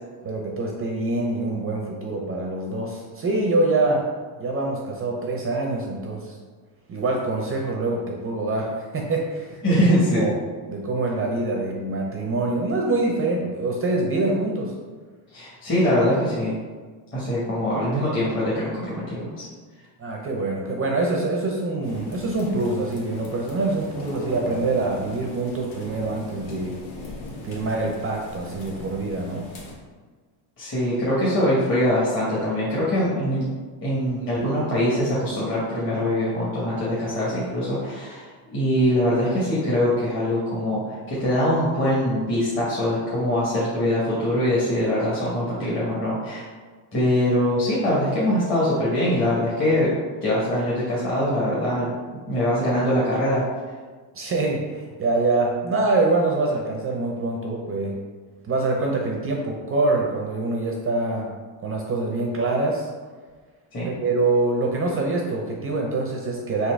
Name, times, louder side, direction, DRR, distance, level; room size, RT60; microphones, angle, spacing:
voice 1, 0.2-4.0 4.4-6.4 6.9-9.8 10.1-10.3 10.7-14.7 20.0-26.7 27.4-29.5 54.1-57.9 58.4-61.3 61.6-62.9 63.9-66.7, right 2 dB, 30° right, 0 dB, 0.4 m, -25 dB
voice 2, 9.6-10.3 15.3-16.5 17.1-19.4 30.6-33.5 33.8-46.4 46.9-49.9 50.2-51.9 52.3-53.4 63.7-63.9, left 1 dB, 25° left, -8 dB, 1.0 m, -23 dB
sound 1, 21.8-29.7, left 2 dB, 75° left, 1.3 m, -39 dB
4.0 x 2.7 x 4.4 m, 1.4 s
cardioid pair, 145°, 48 cm